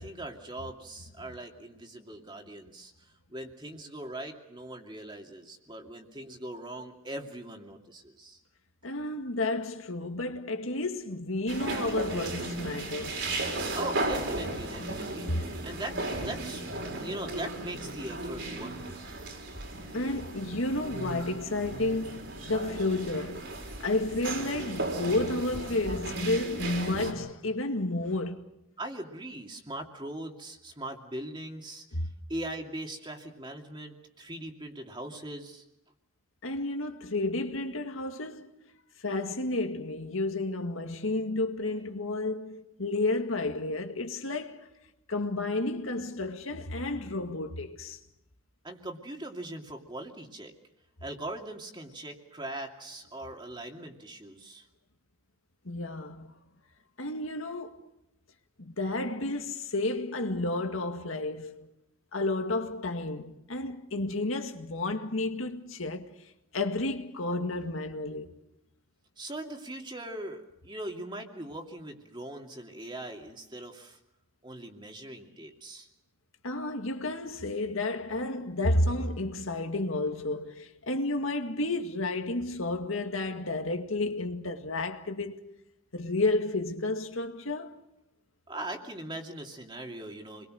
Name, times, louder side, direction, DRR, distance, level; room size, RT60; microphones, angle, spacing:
voice 1, 0.0-8.4 13.7-16.0 16.2-19.0 28.8-31.8 32.3-35.6 48.6-50.5 51.0-54.7 69.2-74.0 74.4-75.9 88.5-90.5, right 1 dB, 25° right, 2.6 m, -40 dB
voice 2, 8.8-13.2 15.3-15.5 19.9-23.5 23.8-28.4 31.9-32.1 36.4-38.5 39.0-44.7 45.1-48.0 55.7-56.3 57.0-57.8 58.6-61.7 62.1-66.1 66.5-68.3 76.4-85.4 85.9-87.8, left 2 dB, 90° left, 2.0 m, -31 dB
sound 1, 11.5-27.1, right 2 dB, 65° right, 4.9 m, -35 dB
28.0 x 22.0 x 6.5 m
head